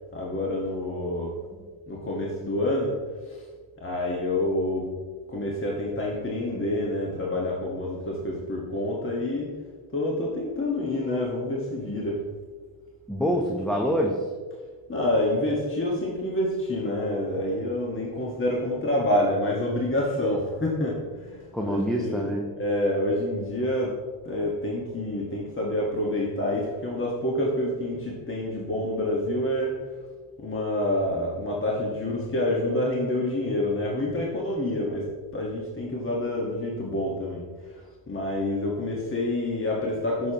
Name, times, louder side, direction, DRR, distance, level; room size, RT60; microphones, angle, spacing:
voice 1, 0.1-1.4 1.9-3.0 3.3-3.4 3.8-4.9 5.3-9.5 9.9-12.2 14.9-22.3 22.6-23.9 24.2-29.8 30.4-35.1 35.3-37.5 37.7-40.3, left 1 dB, 25° left, -2 dB, 1.5 m, -27 dB
voice 2, 13.1-14.2 21.5-22.5, equal, ahead, -1 dB, 0.8 m, -26 dB
8.3 x 6.6 x 2.9 m, 1.5 s
supercardioid pair, 65°, 50 cm